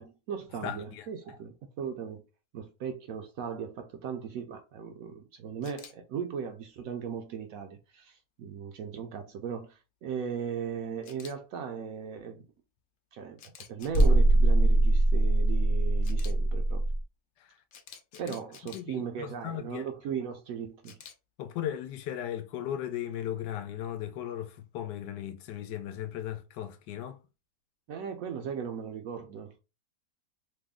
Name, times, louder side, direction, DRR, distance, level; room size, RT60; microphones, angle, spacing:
voice 1, 0.0-2.2 2.5-12.4 13.1-13.4 13.7-16.8 18.2-21.0 27.9-29.6, right 7 dB, 70° right, 0.8 m, -37 dB
voice 2, 0.6-1.1 17.4-17.6 18.2-18.4 18.7-19.8 21.4-27.2, left 10 dB, 85° left, 1.2 m, -37 dB
Camera, 5.6-5.9 11.0-11.3 13.4-14.1 16.0-16.3 17.7-18.8 20.8-21.1, left 8 dB, 65° left, 0.8 m, -49 dB
sound 1, 13.9-17.0, right 1 dB, 40° left, 1.0 m, -22 dB
3.2 x 2.1 x 3.5 m
omnidirectional pair, 1.8 m